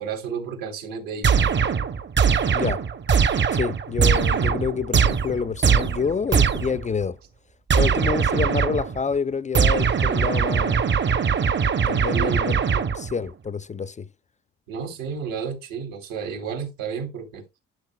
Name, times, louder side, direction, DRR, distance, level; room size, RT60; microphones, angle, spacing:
voice 1, 0.0-1.4 12.1-12.8 14.7-17.4, right 7 dB, 85° right, 3.0 m, -32 dB
sound 1, 1.2-6.9 7.7-9.0 9.5-13.2, right 6 dB, 35° right, 0.8 m, -21 dB
voice 2, 3.5-7.2 7.8-10.8 11.9-12.7 12.9-14.1, left 5 dB, 25° left, 0.4 m, -28 dB
12.0 x 6.4 x 2.2 m
supercardioid pair, 75°, 32 cm